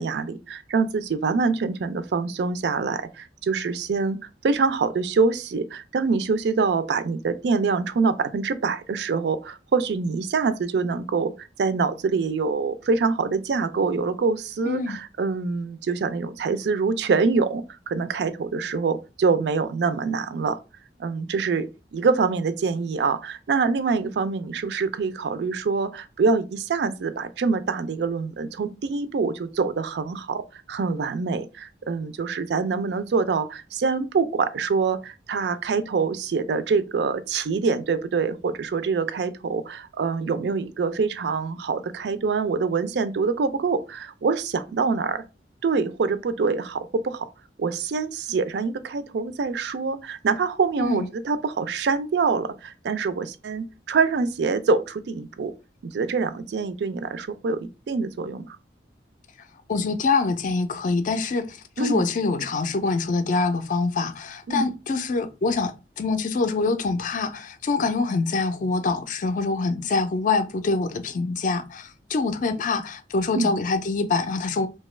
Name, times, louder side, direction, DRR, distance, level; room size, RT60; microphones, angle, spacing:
voice 1, 0.0-4.2 4.4-20.6 21.0-45.2 45.6-47.3 47.6-55.5 55.8-58.6 61.8-62.1 64.5-64.7 73.3-73.5, right 4 dB, 70° right, 0.4 m, -25 dB
voice 2, 14.7-15.0 50.8-51.1 59.7-74.7, left 4 dB, 45° left, 0.4 m, -25 dB
2.8 x 2.3 x 3.1 m
head